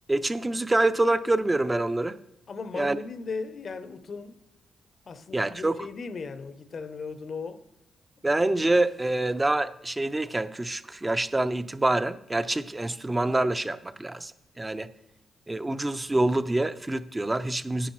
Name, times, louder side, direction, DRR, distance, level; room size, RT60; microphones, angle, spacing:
voice 1, 0.1-2.2 2.7-3.0 5.3-5.9 8.2-14.3 14.6-14.9 15.5-17.9, right 2 dB, 15° right, 0.5 m, -26 dB
voice 2, 2.5-4.4 5.1-7.6, left 4 dB, 50° left, 0.7 m, -37 dB
10.0 x 9.7 x 3.1 m
cardioid pair, 85°, 0 cm